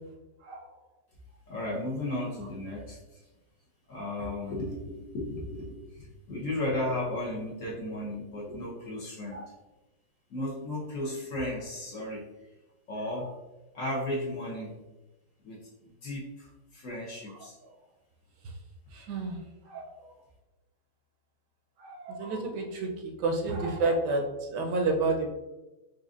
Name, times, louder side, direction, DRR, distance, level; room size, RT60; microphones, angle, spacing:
voice 1, 0.4-0.7 4.0-4.1 9.3-9.5 17.3-17.8 18.4-18.5 18.9-20.1 21.8-25.3, right 3 dB, 80° right, 1 dB, 1.3 m, -31 dB
voice 2, 1.5-3.2 3.9-9.4 10.3-12.2 12.9-13.3 13.7-14.8 15.4-17.6, left 1 dB, 60° left, -4 dB, 0.9 m, -35 dB
4.9 x 2.5 x 2.4 m, 1.0 s
omnidirectional pair, 1.9 m